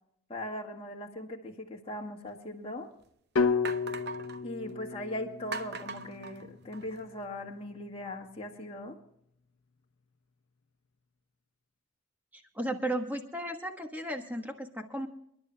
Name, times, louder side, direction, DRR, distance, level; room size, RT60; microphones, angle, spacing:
voice 1, 0.3-2.9 4.4-9.0, left 1 dB, 25° left, 0 dB, 1.9 m, -39 dB
sound 1, 2.3-2.4 3.0-3.1 3.6-4.4 5.5-7.0, right 4 dB, 50° right, 0.7 m, -40 dB
sound 2, 3.4-7.4, left 4 dB, 75° left, 0.8 m, -33 dB
voice 2, 12.3-15.1, right 1 dB, 10° right, 4 dB, 1.3 m, -35 dB
29.5 x 11.0 x 2.3 m, 0.72 s
head